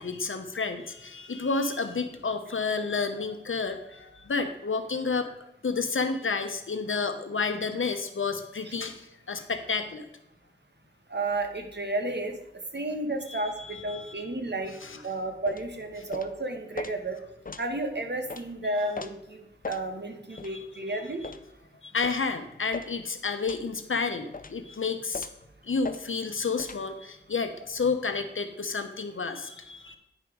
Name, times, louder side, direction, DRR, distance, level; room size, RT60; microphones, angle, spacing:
voice 1, 0.0-5.3 5.6-10.1 13.3-14.2 14.8-15.0 20.3-21.3 21.8-25.3 25.6-30.0, left 4 dB, 90° left, 8 dB, 0.8 m, -31 dB
voice 2, 11.1-12.3 12.7-14.8 15.0-17.2 17.6-21.2, right 2 dB, 60° right, 4 dB, 1.2 m, -32 dB
sound 1, 15.5-15.7 16.1-16.3 16.8-16.9 17.4-17.7 18.3-18.4 18.9-19.1 19.6-19.8 20.4-20.5 21.2-21.4 22.0-22.2 22.7-22.9 23.5-23.7 24.3-24.6 25.1-25.4 25.8-26.0 26.6-26.8, left 4 dB, 45° left, 0.5 m, -38 dB
9.8 x 5.2 x 4.6 m, 0.86 s
wide cardioid pair, 45°, 20 cm